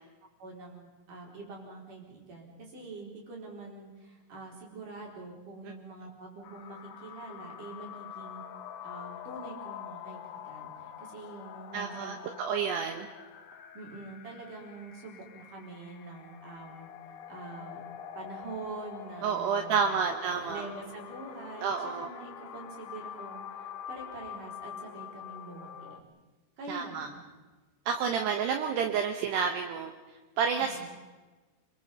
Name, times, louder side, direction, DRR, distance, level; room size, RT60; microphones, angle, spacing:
voice 1, 0.4-8.4 8.8-12.2 13.7-17.8 18.2-26.0 26.6-27.2 30.5-30.9, right 3 dB, 45° right, -1 dB, 5.5 m, -45 dB
sound 1, 6.4-26.0, left 9 dB, 90° left, 1.8 m, -45 dB
voice 2, 11.7-13.1 19.2-20.6 21.6-22.1 26.7-27.1 27.9-29.9 30.4-30.9, right 6 dB, 70° right, 5 dB, 2.9 m, -30 dB
29.5 x 22.5 x 5.5 m, 1.3 s
omnidirectional pair, 5.6 m